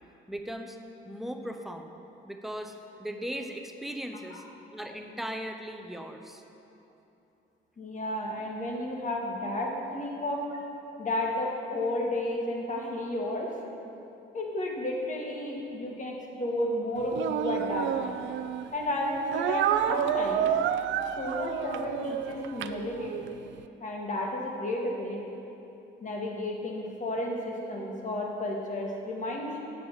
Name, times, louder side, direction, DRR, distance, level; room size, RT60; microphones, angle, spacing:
voice 1, 0.3-0.8 1.0-1.9 2.3-4.4 4.7-6.4 9.6-9.7, equal, ahead, 4 dB, 0.7 m, -38 dB
voice 2, 7.8-10.4 11.0-13.5 14.3-18.1 18.7-20.5 21.2-23.2 23.8-25.2 26.0-29.6, left 1 dB, 40° left, -1 dB, 1.6 m, -32 dB
Speech, 17.1-18.7 19.3-23.3, right 9 dB, 70° right, 0.4 m, -29 dB
7.8 x 5.4 x 7.1 m, 2.9 s
cardioid pair, 90°, 20 cm